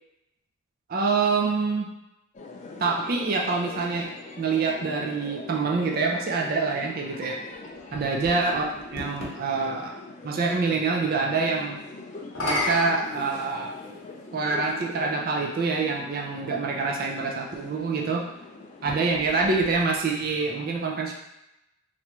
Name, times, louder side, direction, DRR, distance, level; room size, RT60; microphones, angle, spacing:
voice 1, 0.9-1.9 2.8-7.4 7.9-9.9 10.2-11.8 12.4-13.8 14.3-18.3 18.8-21.1, right 4 dB, 45° right, 0 dB, 0.4 m, -26 dB
sound 1, 2.3-19.6, left 3 dB, 35° left, 0.3 m, -42 dB
sound 2, 7.5-9.4 12.2-14.0 14.9-15.0 18.7-20.3, left 2 dB, 65° left, 0.8 m, -33 dB
3.2 x 2.5 x 2.9 m, 0.89 s
head